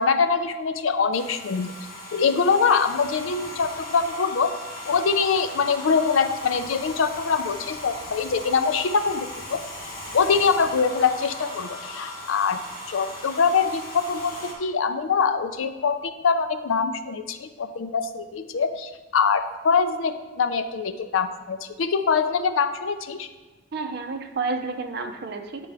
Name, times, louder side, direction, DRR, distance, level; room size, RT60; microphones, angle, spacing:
voice 1, 0.0-1.7 2.1-4.5 4.9-9.6 10.1-12.6 12.9-23.3, left 5 dB, 85° left, 10 dB, 0.5 m, -23 dB
Domestic sounds home sounds, 1.1-14.5, left 1 dB, 50° left, 1.3 m, -38 dB
voice 2, 23.7-25.7, right 4 dB, 55° right, 5 dB, 0.6 m, -30 dB
8.5 x 5.2 x 3.4 m, 1.2 s
head